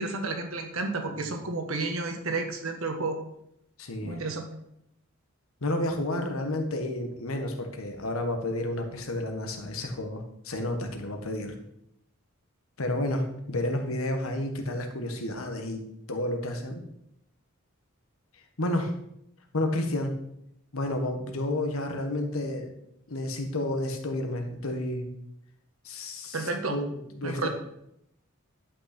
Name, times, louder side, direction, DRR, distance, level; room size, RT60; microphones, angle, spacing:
voice 1, 0.0-3.2 4.0-4.5 26.3-26.8 27.2-27.5, right 3 dB, 75° right, 4 dB, 1.5 m, -31 dB
voice 2, 3.8-4.2 5.6-11.5 12.8-16.8 18.6-18.9 19.5-20.2 20.7-22.7 23.1-25.1 25.8-27.5, left 1 dB, 80° left, 4 dB, 1.4 m, -31 dB
11.0 x 5.9 x 4.4 m, 0.77 s
head